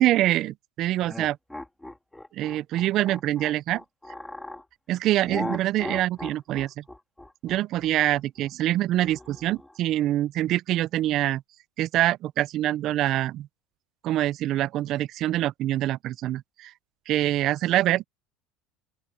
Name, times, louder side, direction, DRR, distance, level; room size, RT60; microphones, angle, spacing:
voice 1, 0.0-1.4 2.3-3.8 4.9-6.8 7.4-11.4 11.8-13.5 14.0-16.7 17.1-18.0, right 14 dB, 50° right, 0.5 m, -25 dB
sound 1, 1.0-4.6 5.3-9.8, left 1 dB, 5° left, 2.5 m, -38 dB
open air
supercardioid pair, 125°, 0 cm